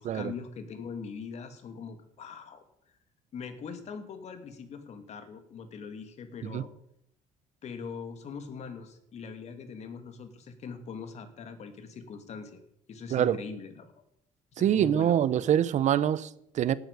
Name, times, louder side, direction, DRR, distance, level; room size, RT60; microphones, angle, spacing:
voice 1, 0.0-2.6 3.3-6.7 7.6-12.6 12.9-13.9 14.5-15.2, left 5 dB, 50° left, 2.7 m, -42 dB
voice 2, 14.6-16.7, right 10 dB, 55° right, 1.0 m, -25 dB
17.5 x 9.2 x 8.4 m
cardioid pair, 135°, 15 cm